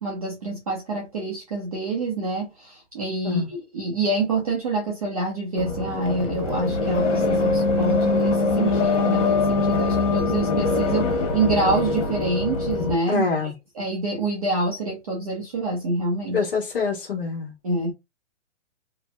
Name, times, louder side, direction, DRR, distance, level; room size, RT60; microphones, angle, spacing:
voice 1, 0.0-13.2 13.8-16.5 17.6-17.9, right 2 dB, 30° right, 0.6 m, -26 dB
sound 1, 5.6-13.0, left 3 dB, 70° left, 1.2 m, -23 dB
voice 2, 13.1-13.5 16.3-17.5, left 5 dB, 45° left, 1.2 m, -25 dB
3.0 x 2.6 x 2.3 m
hypercardioid pair, 175°, 37 cm